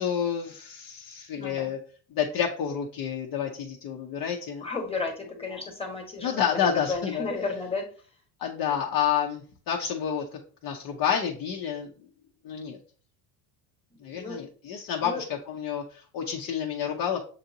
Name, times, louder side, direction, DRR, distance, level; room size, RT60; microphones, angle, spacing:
voice 1, 0.0-1.8 2.1-4.6 6.2-7.3 8.4-10.2 10.6-11.9 12.4-12.8 14.0-17.2, left 8 dB, 45° left, 0 dB, 0.8 m, -29 dB
voice 2, 1.4-1.7 4.6-7.8 14.0-14.4 15.0-15.2, left 4 dB, 10° left, 1 dB, 1.3 m, -33 dB
7.0 x 2.6 x 2.8 m, 0.41 s
supercardioid pair, 120°, 48 cm